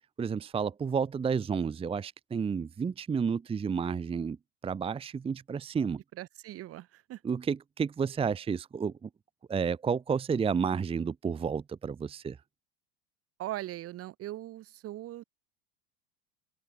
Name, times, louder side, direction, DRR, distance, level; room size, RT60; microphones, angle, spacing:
voice 1, 0.2-4.4 4.6-6.0 7.2-9.1 9.5-12.4, right 6 dB, 15° right, 0.8 m, -31 dB
voice 2, 6.1-7.2 13.4-15.2, right 14 dB, 45° right, 1.7 m, -40 dB
open air
hypercardioid pair, 80°, 34 cm